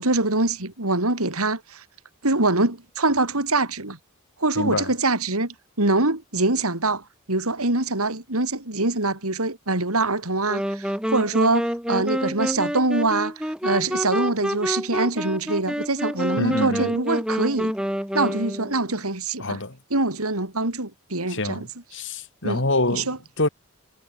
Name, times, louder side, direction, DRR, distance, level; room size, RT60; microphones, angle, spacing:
voice 1, 0.0-1.8 2.2-4.0 4.4-7.0 7.3-17.7 18.1-19.6 19.9-21.7 22.4-22.6 22.9-23.2, right 2 dB, 75° right, 4.3 m, -24 dB
voice 2, 4.6-4.9 16.4-16.9 19.4-19.8 21.3-23.1 23.4-23.5, left 2 dB, 55° left, 3.9 m, -26 dB
sound 1, 10.5-18.9, equal, 5° right, 3.6 m, -28 dB
head